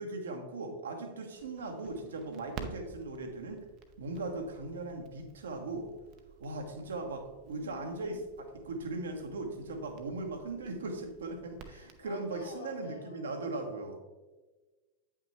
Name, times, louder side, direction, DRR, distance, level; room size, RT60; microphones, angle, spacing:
voice 1, 0.0-3.6 4.0-5.9 6.4-14.0, right 2 dB, 65° right, 4 dB, 1.1 m, -39 dB
Crackle, 1.3-12.5, right 6 dB, 40° right, 0.7 m, -52 dB
voice 2, 7.5-8.2 11.6-13.3, left 5 dB, 65° left, 3 dB, 1.2 m, -49 dB
8.7 x 5.7 x 3.2 m, 1.2 s
figure-of-eight pair, 90°, 0 cm